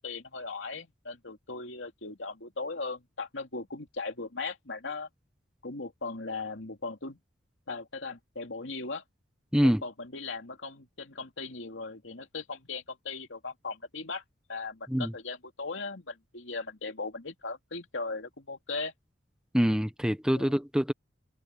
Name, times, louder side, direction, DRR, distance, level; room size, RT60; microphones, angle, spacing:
voice 1, 0.0-5.1 5.6-7.2 7.7-9.0 9.6-14.2 14.5-18.9 20.3-20.6, left 3 dB, 75° left, 3.0 m, -38 dB
voice 2, 9.5-9.8 14.9-15.1 19.5-20.9, equal, 5° right, 1.0 m, -25 dB
head